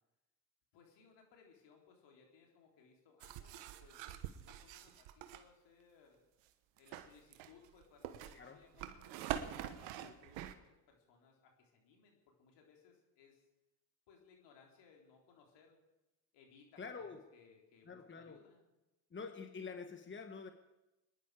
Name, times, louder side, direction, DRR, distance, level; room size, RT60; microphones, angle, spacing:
voice 1, 0.7-6.2 6.8-13.5 14.1-15.8 16.3-18.6, left 5 dB, 70° left, 1 dB, 3.8 m, -65 dB
sound 1, 3.2-5.4 6.8-10.5, right 11 dB, 80° right, 1.2 m, -45 dB
voice 2, 16.8-17.2 17.9-18.4 19.1-20.5, left 5 dB, 25° left, 6 dB, 1.5 m, -47 dB
24.5 x 10.5 x 5.0 m, 1.0 s
supercardioid pair, 65°, 44 cm